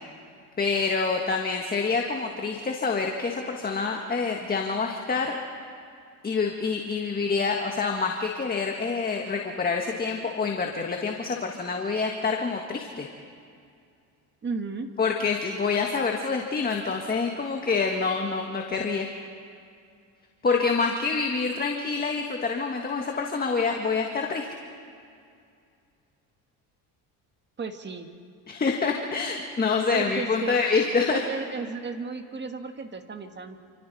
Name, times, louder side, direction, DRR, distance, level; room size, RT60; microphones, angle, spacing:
voice 1, 0.6-5.4 6.2-13.1 15.0-19.1 20.4-24.5 28.5-31.2, left 4 dB, 25° left, 2 dB, 1.7 m, -27 dB
voice 2, 14.4-14.9 27.6-28.1 29.9-30.6 31.1-33.6, right 4 dB, 30° right, 6 dB, 1.8 m, -34 dB
28.5 x 26.0 x 4.2 m, 2.4 s
cardioid pair, 110°, 38 cm